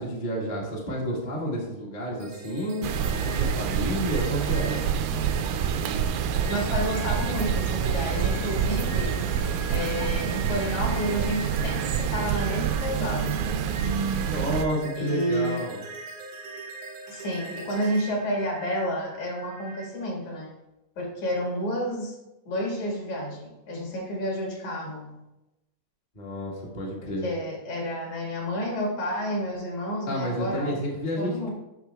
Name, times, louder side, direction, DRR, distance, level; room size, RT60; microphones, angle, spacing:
voice 1, 0.0-2.8 3.1-4.8 14.3-15.8 26.1-27.2 30.1-31.5, equal, 30° left, -3 dB, 0.8 m, -30 dB
sound 1, 2.2-19.9, right 3 dB, 65° right, 1.4 m, -41 dB
sound 2, 2.8-14.6, right 7 dB, 80° right, 2.0 m, -27 dB
voice 2, 6.5-9.3 9.7-13.6 15.0-15.7 17.1-20.5 21.0-22.2 22.5-25.2 27.2-30.7 31.2-31.5, equal, 60° left, -1 dB, 3.0 m, -30 dB
8.4 x 6.2 x 3.4 m, 0.95 s
omnidirectional pair, 3.9 m